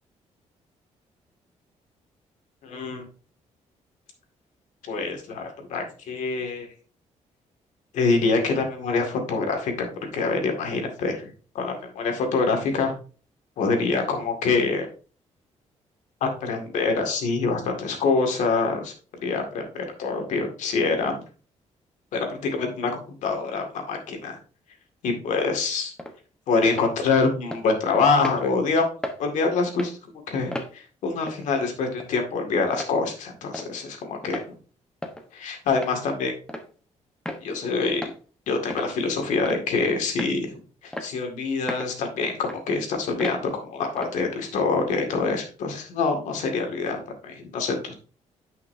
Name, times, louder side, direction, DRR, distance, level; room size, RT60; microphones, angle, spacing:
voice 1, 2.6-3.0 4.8-6.7 7.9-9.9 10.1-11.3 11.5-12.9 13.6-14.9 16.2-18.9 19.2-21.2 22.1-24.4 25.0-25.9 26.5-28.9 29.2-34.4 35.3-36.3 37.4-38.1 38.5-48.0, left 4 dB, 85° left, 4 dB, 2.1 m, -25 dB
sound 1, 26.0-26.1 26.6-26.9 27.5-27.6 28.2-28.4 29.0-29.2 29.7-29.9 30.5-30.7 31.3-31.4 32.0-32.1 32.7-32.9 33.5-33.7 34.2-34.5 35.0-35.2 35.7-36.0 36.5-36.7 37.3-37.4 38.0-38.2 38.7-38.9 39.4-39.7 40.2-40.4 40.9-41.1 41.7-41.9 42.4-42.6 43.2-43.4 44.0-44.2, left 1 dB, 5° left, 1.1 m, -34 dB
9.7 x 5.7 x 2.7 m, 0.37 s
cardioid pair, 140°, 12 cm